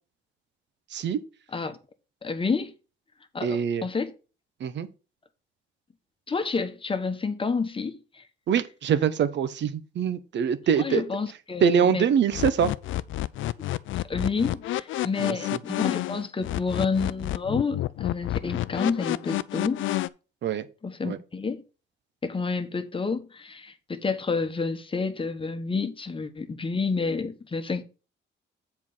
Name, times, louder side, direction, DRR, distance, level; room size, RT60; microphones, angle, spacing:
voice 1, 2.2-2.7 3.3-4.1 6.3-8.2 10.8-12.1 14.1-19.9 20.8-21.6 22.2-27.8, left 4 dB, 25° left, 1.1 m, -29 dB
voice 2, 3.4-3.9 4.6-4.9 8.5-11.0 11.6-12.7 15.2-15.4 20.4-20.6 21.0-21.2, right 7 dB, 65° right, 0.9 m, -24 dB
sound 1, 12.3-20.1, left 15 dB, 75° left, 0.5 m, -29 dB
7.4 x 4.6 x 5.5 m
cardioid pair, 90°, 20 cm